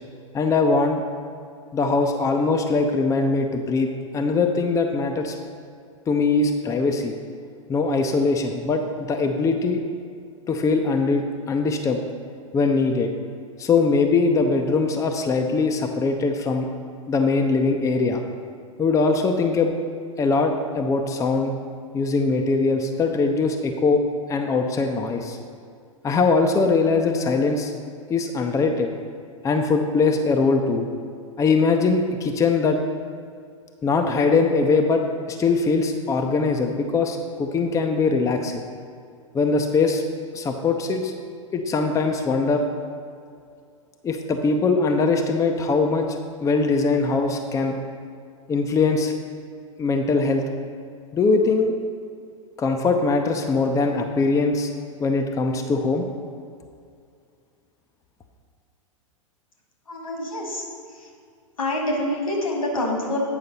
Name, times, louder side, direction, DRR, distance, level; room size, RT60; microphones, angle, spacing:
voice 1, 0.3-1.0 1.7-3.9 4.1-5.3 6.1-7.2 7.7-9.8 10.5-12.0 12.5-13.1 13.6-16.7 17.1-18.2 18.8-19.7 20.2-21.5 21.9-24.0 24.3-25.4 26.0-27.7 28.1-28.9 29.4-30.9 31.4-32.8 33.8-35.0 35.3-38.6 39.3-40.0 40.3-41.1 41.5-42.6 44.0-46.1 46.4-47.7 48.5-49.1 49.8-50.4 51.1-51.8 52.6-54.7 55.0-56.0, left 4 dB, 20° left, 4 dB, 0.7 m, -21 dB
voice 2, 59.9-60.6 61.6-63.2, left 1 dB, 85° left, 0 dB, 2.4 m, -26 dB
9.1 x 5.6 x 5.5 m, 2.3 s
hypercardioid pair, 105°, 17 cm